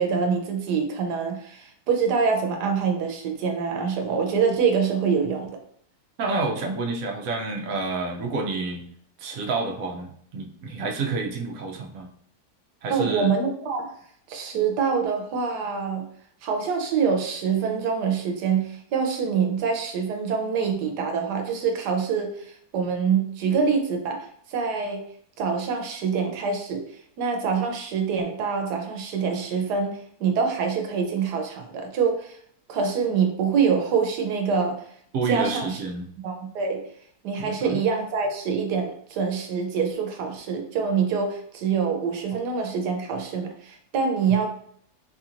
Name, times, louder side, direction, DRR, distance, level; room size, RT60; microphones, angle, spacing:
voice 1, 0.0-5.5 12.9-13.9 14.3-16.1 16.4-24.2 24.5-25.0 25.4-32.4 32.7-34.8 35.3-35.8 36.2-36.8 37.2-44.5, right 6 dB, 85° right, 3 dB, 1.3 m, -25 dB
voice 2, 6.2-8.8 9.2-12.1 12.8-13.3 35.1-36.1 37.4-37.8, right 3 dB, 65° right, 2 dB, 0.9 m, -29 dB
4.4 x 2.8 x 2.5 m, 0.63 s
omnidirectional pair, 1.7 m